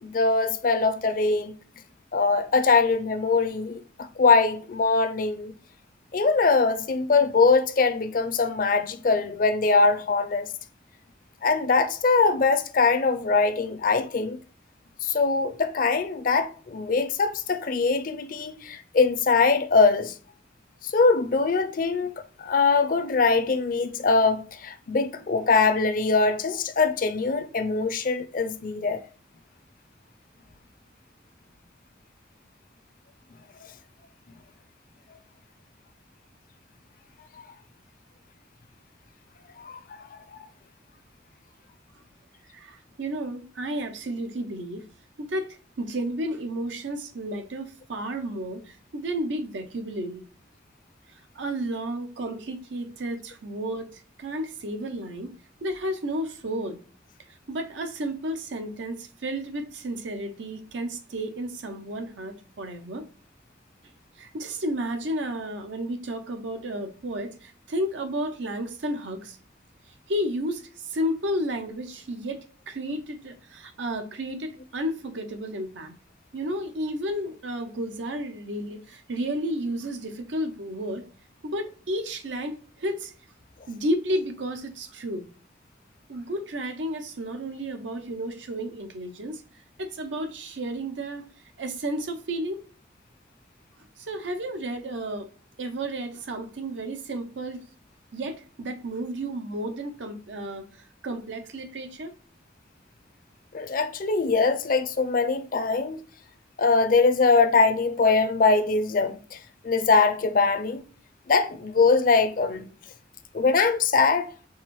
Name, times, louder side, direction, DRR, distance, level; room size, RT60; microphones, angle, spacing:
voice 1, 0.0-1.5 2.1-5.5 6.1-10.5 11.4-14.4 15.0-20.1 20.8-29.0 37.4-37.5 39.6-40.4 103.5-106.0 106.6-109.4 109.6-110.8 111.3-112.6 113.3-114.3, left 4 dB, 50° left, 0.5 m, -22 dB
voice 2, 42.5-44.9 45.2-50.2 51.3-55.4 55.6-56.8 57.5-63.1 64.2-69.4 70.1-76.0 76.3-81.0 81.4-83.1 83.7-85.2 86.1-89.4 89.8-91.3 91.6-92.6 94.0-95.3 95.6-97.7 98.1-102.1, right 1 dB, 90° right, 0.7 m, -32 dB
4.7 x 3.3 x 3.1 m
head